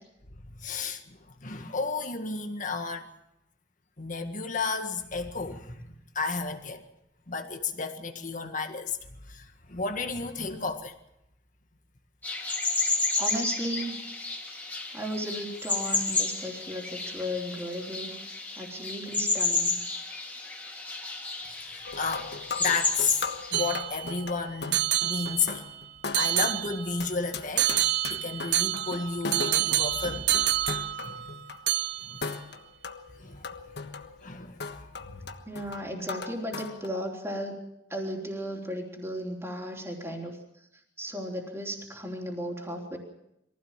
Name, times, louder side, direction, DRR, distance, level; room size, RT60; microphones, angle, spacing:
voice 1, 0.6-3.1 4.0-6.8 7.3-9.0 9.3-10.9 21.5-22.3 22.6-23.2 23.5-25.7 26.1-27.7 28.0-30.3 31.0-31.2 32.0-32.2 33.2-33.5 34.2-34.6 35.1-35.2, left 4 dB, 45° left, 1.8 m, -32 dB
sound 1, 12.2-23.7, left 3 dB, 10° left, 3.2 m, -31 dB
voice 2, 13.2-14.1 14.9-18.1 18.6-19.8 35.4-37.6 37.9-40.3 41.0-43.0, equal, 15° right, 3.5 m, -35 dB
sound 2, 21.8-31.6 32.2-36.9, left 4 dB, 65° left, 1.4 m, -39 dB
sound 3, 23.5-24.2 24.7-25.7 26.1-27.0 27.6-31.4 31.7-32.3, right 12 dB, 60° right, 0.8 m, -28 dB
23.0 x 16.0 x 7.4 m
head